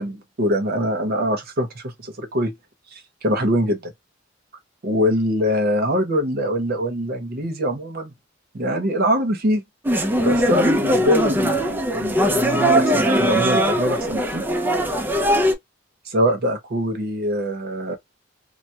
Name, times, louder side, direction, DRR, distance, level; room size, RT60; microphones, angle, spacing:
voice 1, 0.0-2.5 2.9-3.9 4.8-8.1 8.5-9.6 10.2-14.4 16.1-18.0, equal, 50° right, 0.7 m, -23 dB
sound 1, 9.8-15.5, equal, 10° right, 0.4 m, -20 dB
2.2 x 2.1 x 2.7 m
head